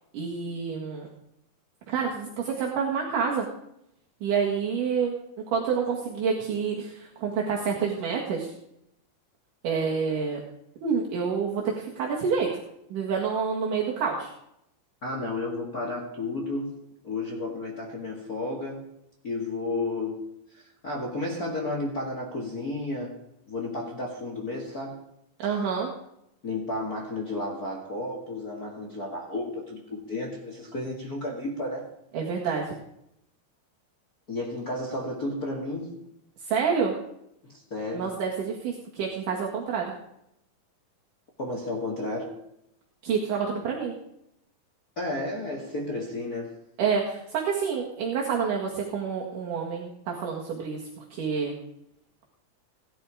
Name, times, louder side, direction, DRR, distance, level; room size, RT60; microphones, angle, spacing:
voice 1, 0.1-1.1 1.9-3.5 4.2-5.1 5.5-8.5 9.6-10.4 10.8-12.5 12.9-14.3 25.4-25.9 32.1-32.8 36.4-36.9 37.9-39.9 43.0-43.9 46.8-51.5, right 6 dB, 70° right, -2 dB, 3.4 m, -28 dB
voice 2, 15.0-18.9 19.2-23.2 23.5-25.0 26.4-31.9 34.3-36.0 37.4-38.1 41.4-42.5 45.0-46.7, left 2 dB, 30° left, -1 dB, 2.0 m, -32 dB
18.5 x 11.0 x 4.9 m, 0.78 s
omnidirectional pair, 3.9 m